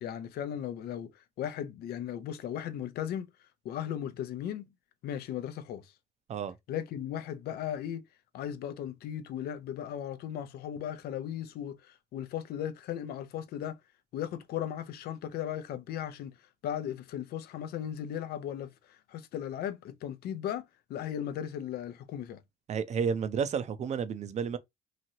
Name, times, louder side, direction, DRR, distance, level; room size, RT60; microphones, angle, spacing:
voice 1, 0.0-3.3 3.6-4.7 5.0-5.9 6.7-8.0 8.3-13.8 14.1-16.3 16.6-22.4, left 10 dB, 70° left, 0.5 m, -37 dB
voice 2, 22.7-24.6, right 6 dB, 40° right, 0.5 m, -31 dB
3.0 x 2.7 x 2.6 m
cardioid pair, 110°, 17 cm